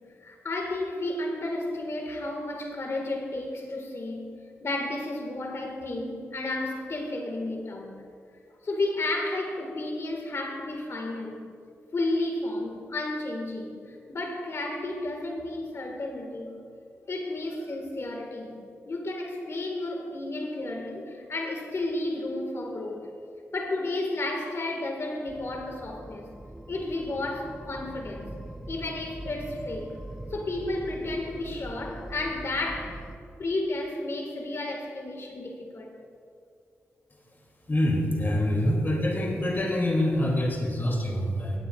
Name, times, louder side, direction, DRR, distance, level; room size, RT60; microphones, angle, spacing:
voice 1, 0.2-4.3 4.6-8.0 8.6-11.4 11.9-16.6 17.1-18.6 18.9-23.1 23.5-26.3 26.7-28.3 28.7-30.0 30.3-33.0 33.4-36.0, left 2 dB, 55° left, 2 dB, 1.7 m, -32 dB
sound 1, 25.3-33.2, right 1 dB, 10° right, 0.7 m, -42 dB
voice 2, 37.7-41.6, left 1 dB, 40° left, -1 dB, 2.6 m, -25 dB
17.0 x 8.7 x 2.4 m, 2.3 s
cardioid pair, 50°, 5 cm